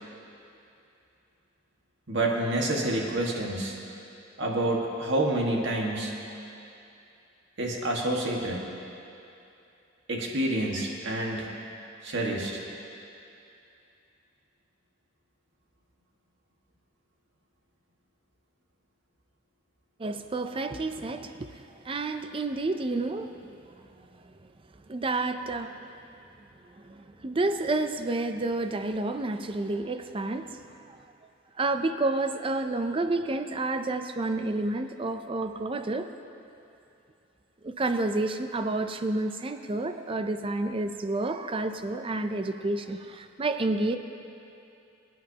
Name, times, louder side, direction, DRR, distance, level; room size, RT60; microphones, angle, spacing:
voice 1, 2.1-3.8 4.4-6.2 7.6-8.6 10.1-11.5 12.0-12.6, right 1 dB, 60° right, -1 dB, 1.7 m, -28 dB
voice 2, 20.0-21.5 21.8-23.4 24.9-25.9 26.8-30.6 31.6-36.1 37.6-44.0, right 2 dB, 25° right, 8 dB, 0.5 m, -30 dB
24.0 x 9.4 x 2.9 m, 2.7 s
head